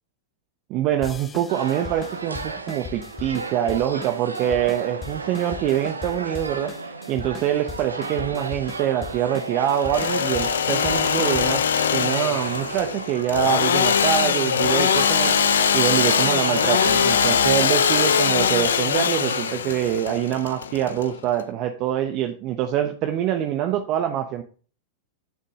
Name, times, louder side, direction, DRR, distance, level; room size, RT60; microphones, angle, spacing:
voice 1, 0.7-6.7 7.1-11.6 11.9-15.4 15.7-24.4, right 11 dB, 45° right, 6 dB, 0.9 m, -25 dB
sound 1, 1.0-11.7, left 6 dB, 20° left, 0.9 m, -40 dB
sound 2, 1.5-19.5, right 3 dB, 85° right, 1.0 m, -33 dB
Engine / Sawing, 9.7-21.4, left 8 dB, 70° left, 0.7 m, -22 dB
9.3 x 6.9 x 3.7 m, 0.39 s
figure-of-eight pair, 95°, 0 cm